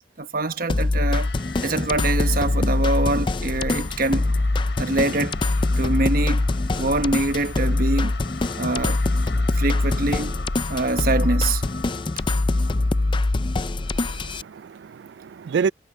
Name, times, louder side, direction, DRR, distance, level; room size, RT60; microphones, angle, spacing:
voice 1, 0.2-1.3 1.6-4.3 4.8-5.4 5.8-6.5 6.8-8.2 8.6-9.0 9.5-11.6, right 2 dB, 55° right, 1.1 m, -24 dB
sound 1, 0.7-14.4, left 2 dB, 25° left, 0.4 m, -23 dB
sound 2, 1.0-14.8, left 5 dB, 85° left, 5.9 m, -42 dB
voice 2, 13.9-15.7, right 6 dB, 80° right, 0.3 m, -28 dB
head